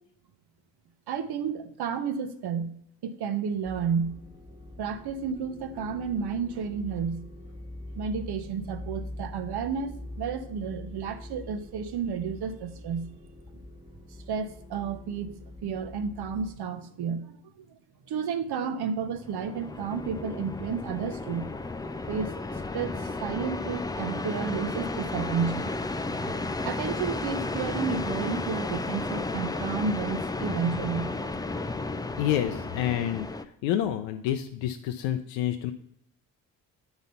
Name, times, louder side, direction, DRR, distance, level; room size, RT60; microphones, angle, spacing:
voice 1, 1.1-2.7 3.0-4.1 4.8-7.2 8.0-13.1 14.3-15.3 15.6-17.4 18.1-21.5 22.1-25.7 26.2-31.3, right 6 dB, 60° right, 0.9 m, -32 dB
sound 1, 3.6-16.6, left 1 dB, 10° right, 1.3 m, -44 dB
sound 2, 19.0-33.5, left 3 dB, 10° left, 0.4 m, -33 dB
voice 2, 32.2-35.7, left 11 dB, 75° left, 0.5 m, -28 dB
8.0 x 4.0 x 5.3 m
hypercardioid pair, 40°, 44 cm